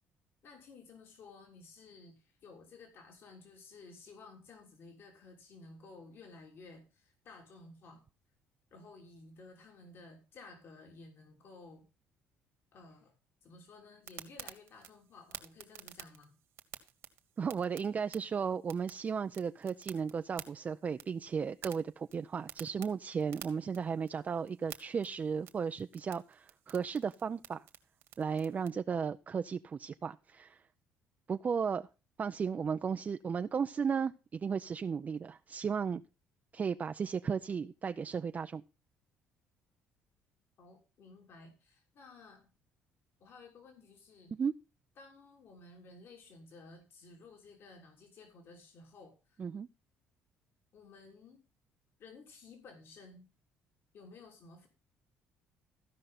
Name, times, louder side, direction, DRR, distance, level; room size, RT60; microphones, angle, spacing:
voice 1, 0.4-8.0 8.7-11.9 12.7-13.1 13.4-16.4 40.6-42.5 43.2-44.3 45.0-49.4 50.7-51.4 52.0-53.3 53.9-54.7, left 3 dB, 60° left, 3.4 m, -55 dB
sound 1, 14.0-28.7, right 11 dB, 70° right, 1.7 m, -52 dB
voice 2, 17.4-27.6 28.2-30.6 31.3-31.9 32.2-36.0 36.5-38.6 44.3-44.5 49.4-49.7, right 6 dB, 35° right, 0.5 m, -35 dB
14.5 x 5.3 x 5.9 m
supercardioid pair, 80°, 5 cm